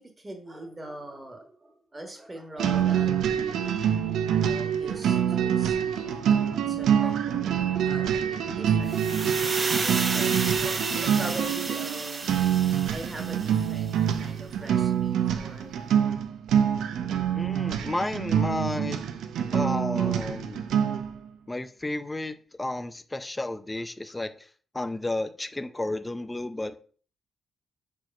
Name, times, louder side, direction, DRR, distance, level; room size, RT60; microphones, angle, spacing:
voice 1, 0.0-3.6 4.0-7.5 7.8-12.5 12.9-15.9, right 1 dB, 15° right, 3 dB, 1.5 m, -42 dB
sound 1, 2.6-21.1, right 9 dB, 90° right, 0.7 m, -26 dB
sound 2, 8.9-13.9, right 3 dB, 30° right, 0.8 m, -32 dB
voice 2, 17.4-19.0 19.5-20.6 21.5-24.5 24.7-26.8, left 2 dB, 10° left, 10 dB, 0.5 m, -32 dB
4.9 x 4.5 x 5.3 m, 0.43 s
cardioid pair, 140°, 0 cm